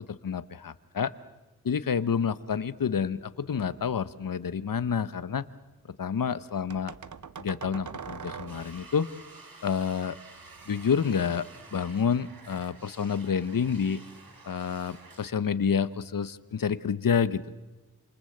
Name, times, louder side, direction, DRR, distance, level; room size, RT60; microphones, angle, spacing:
voice 1, 0.1-1.1 1.6-5.4 6.0-6.9 7.4-9.1 9.6-10.2 10.7-11.4 11.7-14.0 14.5-17.6, left 7 dB, 70° left, 15 dB, 0.9 m, -28 dB
sound 1, 3.5-4.1 4.6-5.5 6.7-8.9 10.4-11.9, right 6 dB, 60° right, 0.9 m, -44 dB
sound 2, 8.5-15.3, right 3 dB, 85° right, 3.7 m, -50 dB
28.0 x 27.0 x 7.8 m, 1.2 s
wide cardioid pair, 90°, 35 cm